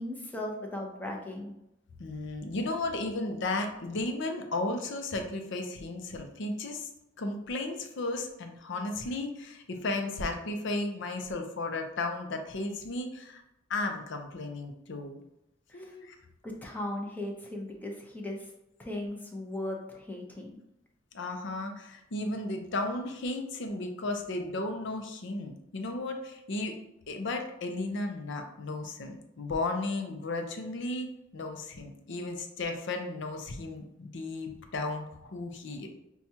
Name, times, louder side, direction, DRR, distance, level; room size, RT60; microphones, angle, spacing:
voice 1, 0.0-1.5 15.7-16.0 16.4-18.5 18.8-20.6, left 1 dB, 10° left, 0 dB, 0.6 m, -37 dB
voice 2, 2.0-6.9 7.2-13.4 13.7-15.2 15.7-16.1 21.1-26.8 27.1-31.1 31.3-35.9, left 2 dB, 65° left, 5 dB, 0.6 m, -34 dB
5.8 x 2.3 x 2.7 m, 0.84 s
head